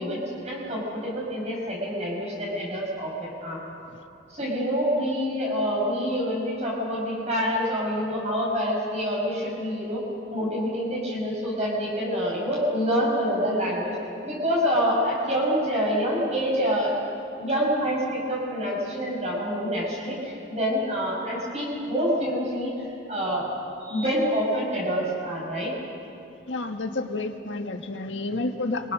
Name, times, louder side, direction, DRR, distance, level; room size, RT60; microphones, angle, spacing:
voice 1, 0.0-3.6 4.3-10.0 10.3-13.9 14.2-16.9 17.4-22.7 23.1-23.5 23.8-25.7, equal, 35° right, -4 dB, 6.1 m, -26 dB
voice 2, 26.5-28.9, left 2 dB, 85° left, 5 dB, 1.6 m, -30 dB
29.5 x 23.5 x 6.3 m, 2.7 s
head